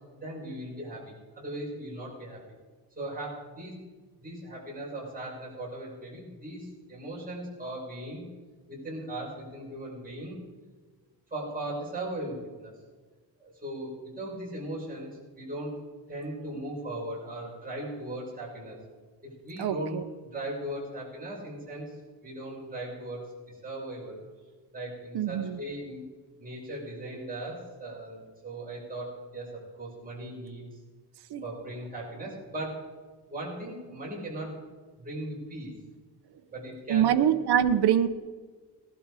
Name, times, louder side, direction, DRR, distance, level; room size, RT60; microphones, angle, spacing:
voice 1, 0.1-2.4 3.0-3.8 4.2-8.2 8.7-10.4 11.3-12.7 13.4-15.7 16.1-18.8 19.2-20.0 20.3-21.9 22.2-23.2 23.6-24.2 24.7-26.0 26.4-29.5 29.8-30.6 31.4-32.9 33.3-34.5 35.0-35.7 36.5-37.2, right 1 dB, 20° right, -5 dB, 5.7 m, -38 dB
voice 2, 19.6-20.0 25.1-25.6 31.3-31.4 36.9-38.1, right 9 dB, 70° right, 8 dB, 0.8 m, -24 dB
18.0 x 12.0 x 4.9 m, 1.4 s
wide cardioid pair, 165°, 41 cm